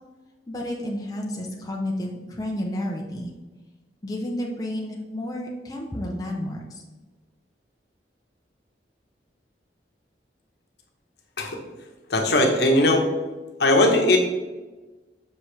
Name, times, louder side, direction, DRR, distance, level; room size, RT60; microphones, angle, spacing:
voice 1, 0.5-3.3 4.0-6.8, left 1 dB, 20° left, -1 dB, 0.7 m, -31 dB
voice 2, 12.1-13.1 13.6-14.2, left 1 dB, 70° left, 2 dB, 1.1 m, -19 dB
6.7 x 5.1 x 3.3 m, 1.2 s
head